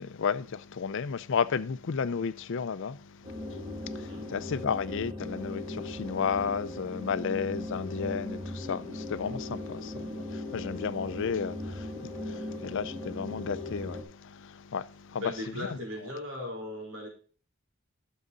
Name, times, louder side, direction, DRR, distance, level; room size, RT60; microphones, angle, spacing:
voice 1, 0.0-15.3 15.6-15.8, left 6 dB, 60° left, 0.5 m, -33 dB
sound 1, 3.2-14.0, left 2 dB, 20° right, 2.0 m, -38 dB
voice 2, 4.0-4.3 15.2-17.1, left 1 dB, 80° right, 4.0 m, -38 dB
11.0 x 6.4 x 4.0 m
head